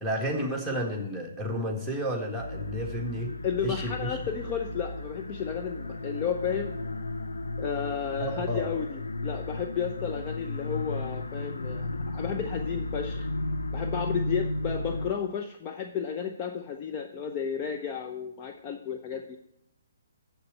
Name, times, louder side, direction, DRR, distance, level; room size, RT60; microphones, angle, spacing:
voice 1, 0.0-3.3 3.6-4.2 8.2-8.7, equal, ahead, -3 dB, 1.7 m, -31 dB
sound 1, 2.4-15.1, left 2 dB, 75° left, 0.7 m, -34 dB
voice 2, 3.4-6.8 7.6-13.3 13.7-19.4, left 7 dB, 25° left, 4 dB, 0.6 m, -33 dB
8.0 x 6.7 x 7.7 m, 0.78 s
figure-of-eight pair, 130°, 0 cm